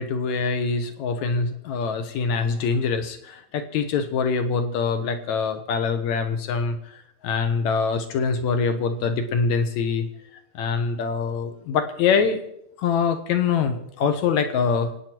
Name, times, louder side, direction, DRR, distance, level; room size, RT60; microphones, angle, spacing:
voice 1, 0.0-10.1 10.5-12.4 12.8-14.9, left 5 dB, 70° left, 7 dB, 2.5 m, -24 dB
26.5 x 9.1 x 4.5 m, 0.74 s
omnidirectional pair, 3.5 m